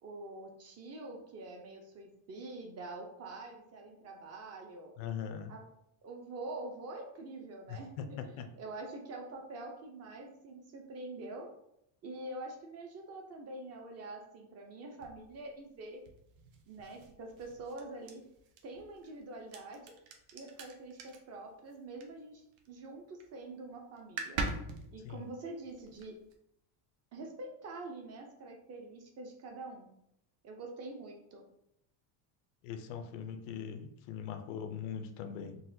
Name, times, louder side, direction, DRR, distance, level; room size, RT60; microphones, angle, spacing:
voice 1, 0.0-4.9 5.5-5.7 6.0-11.5 12.0-16.0 16.7-18.2 18.6-19.9 20.3-24.4 24.9-26.2 27.1-29.9 30.4-31.4, right 2 dB, 35° right, 2 dB, 0.5 m, -45 dB
voice 2, 5.0-5.5 7.7-8.1 8.4-8.5 25.0-25.3 32.6-35.6, left 7 dB, 85° left, 7 dB, 0.6 m, -41 dB
sound 1, 15.0-22.7 23.0-23.4 23.7-23.8 24.0-26.4, right 3 dB, 80° right, 0.7 m, -43 dB
3.9 x 2.2 x 2.6 m, 0.76 s
cardioid pair, 160°, 45 cm